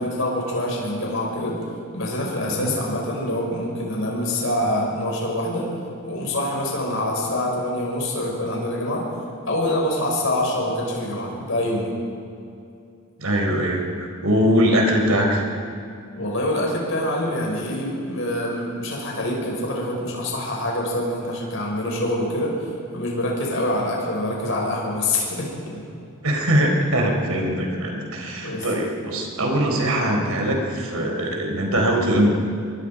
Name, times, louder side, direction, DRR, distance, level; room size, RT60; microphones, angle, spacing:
voice 1, 0.0-1.6 1.9-5.7 6.0-9.0 9.5-11.9 16.2-25.8 28.4-28.7, left 1 dB, 60° left, -2 dB, 6.2 m, -25 dB
voice 2, 2.4-2.7 13.2-15.4 26.2-32.4, equal, 85° right, 1 dB, 4.5 m, -22 dB
26.5 x 23.0 x 5.2 m, 2.5 s
head